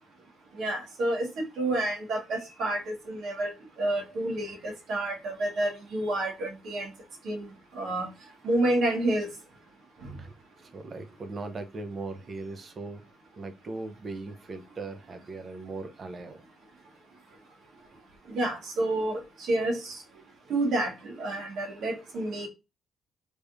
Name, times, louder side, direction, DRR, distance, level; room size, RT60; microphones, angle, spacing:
voice 1, 0.6-1.3 1.6-3.5 3.8-6.9 7.2-7.5 7.7-8.1 8.4-9.3 18.3-20.0 20.5-22.5, right 1 dB, 70° right, 1.7 m, -29 dB
voice 2, 10.6-13.0 13.3-16.4, right 3 dB, 45° right, 0.9 m, -39 dB
3.6 x 3.2 x 2.6 m
supercardioid pair, 65°, 0 cm